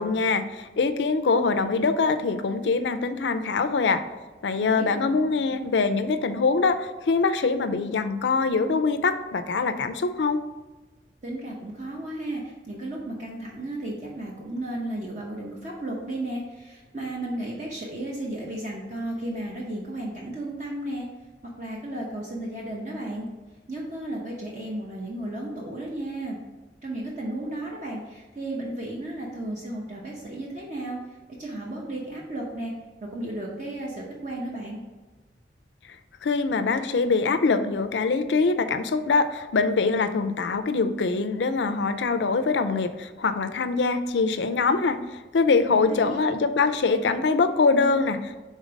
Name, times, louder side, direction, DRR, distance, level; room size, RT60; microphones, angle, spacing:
voice 1, 0.0-4.0 4.4-10.4 36.2-45.0 45.3-48.4, left 4 dB, 90° left, 9 dB, 0.4 m, -23 dB
voice 2, 4.6-5.2 5.5-5.6 11.2-21.1 21.6-23.3 23.7-26.4 26.8-31.0 31.4-32.7 33.0-34.8 45.7-46.3, right 1 dB, 45° right, -3 dB, 0.8 m, -34 dB
5.2 x 3.8 x 5.1 m, 1.2 s
head